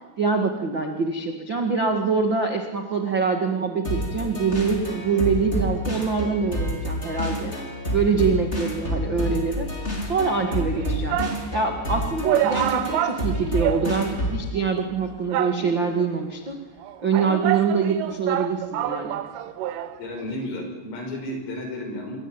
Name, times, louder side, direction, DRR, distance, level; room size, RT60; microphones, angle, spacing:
voice 1, 0.2-7.5 7.9-9.7 10.0-11.2 11.5-16.6 17.0-19.2, right 5 dB, 60° right, 4 dB, 1.2 m, -24 dB
sound 1, 3.8-14.5, equal, 15° left, 3.9 m, -29 dB
sound 2, 10.5-11.5 11.9-12.0 12.2-14.3 14.6-14.7 15.3-16.0 16.8-20.0 20.2-20.3, right 12 dB, 75° right, 3.5 m, -27 dB
voice 2, 20.0-22.3, left 1 dB, 80° left, 4 dB, 8.0 m, -32 dB
26.5 x 21.5 x 9.2 m, 1.2 s
omnidirectional pair, 5.8 m